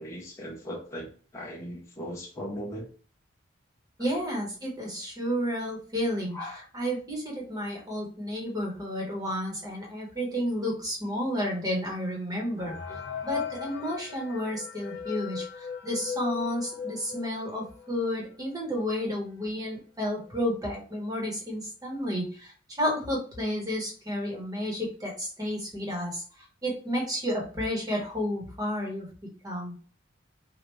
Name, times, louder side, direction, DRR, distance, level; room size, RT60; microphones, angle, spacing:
voice 1, 0.0-2.9 6.3-6.6 12.5-13.0, equal, 15° left, -3 dB, 0.7 m, -39 dB
voice 2, 4.0-6.4 6.7-12.7 13.2-26.2 26.6-29.1 29.4-29.7, equal, 20° right, -2 dB, 1.2 m, -31 dB
sound 1, 12.6-18.0 18.5-18.6 18.8-18.9 19.6-19.7 20.1-20.4, left 7 dB, 60° left, 0.8 m, -38 dB
3.3 x 2.4 x 3.0 m, 0.41 s
head